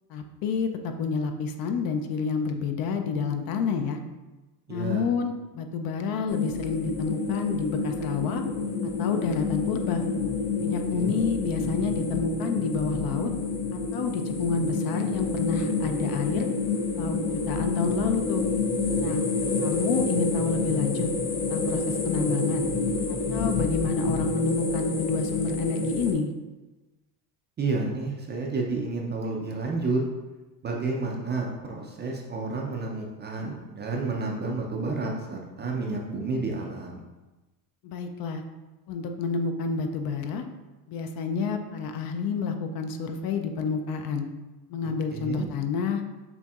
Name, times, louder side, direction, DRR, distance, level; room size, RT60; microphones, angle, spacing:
voice 1, 0.1-4.0 4.7-8.4 9.0-10.0 10.6-13.3 13.7-16.5 16.9-17.2 17.5-18.4 19.0-19.2 19.6-21.1 21.5-22.7 23.3-26.3 37.8-38.4 38.9-40.4 40.9-44.2 44.7-46.0, left 5 dB, 50° left, 6 dB, 0.5 m, -29 dB
voice 2, 4.7-5.1 10.9-11.2 27.6-30.0 30.6-37.0 45.1-45.5, right 3 dB, 25° right, 0 dB, 0.4 m, -30 dB
sound 1, 6.3-26.1, left 4 dB, 85° left, 1.0 m, -28 dB
6.9 x 2.6 x 2.4 m, 1.1 s
supercardioid pair, 105°, 47 cm